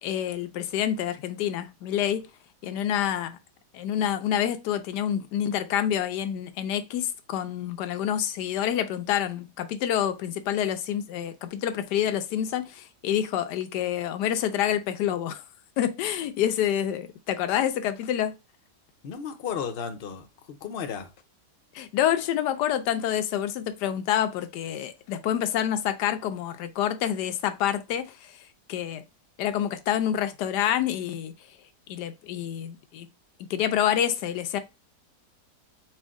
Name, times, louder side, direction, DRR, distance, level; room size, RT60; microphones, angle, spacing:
voice 1, 0.0-2.2 2.6-3.4 3.7-15.4 15.8-18.3 21.7-28.4 28.7-29.0 29.4-31.3 31.9-33.1 33.4-34.6, left 10 dB, 85° left, 1.2 m, -27 dB
voice 2, 19.0-21.1, left 7 dB, 50° left, 0.7 m, -34 dB
4.4 x 2.5 x 3.5 m
omnidirectional pair, 1.7 m